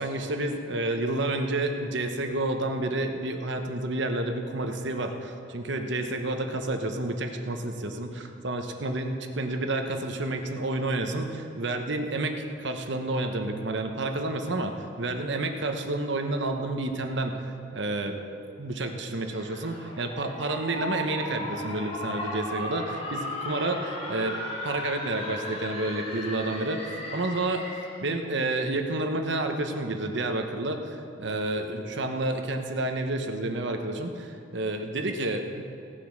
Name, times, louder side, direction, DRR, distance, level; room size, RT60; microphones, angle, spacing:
voice 1, 0.0-18.2 18.6-24.4 24.6-27.6 28.0-35.6, right 2 dB, 60° right, 5 dB, 1.1 m, -30 dB
sound 1, 19.2-28.1, left 1 dB, 30° left, 2.0 m, -36 dB
17.0 x 7.6 x 6.5 m, 2.6 s
head